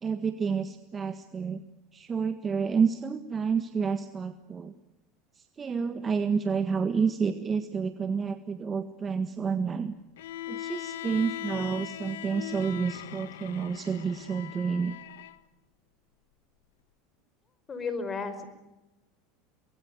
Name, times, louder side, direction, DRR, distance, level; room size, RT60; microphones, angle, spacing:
voice 1, 0.0-1.6 1.9-4.7 5.4-9.9 10.5-15.0, right 6 dB, 25° right, 10 dB, 1.6 m, -29 dB
Bowed string instrument, 10.2-15.4, left 13 dB, 85° left, 1.6 m, -40 dB
voice 2, 17.7-18.5, left 4 dB, 25° left, 11 dB, 5.2 m, -33 dB
24.0 x 21.0 x 9.6 m, 1.0 s
supercardioid pair, 105°, 0 cm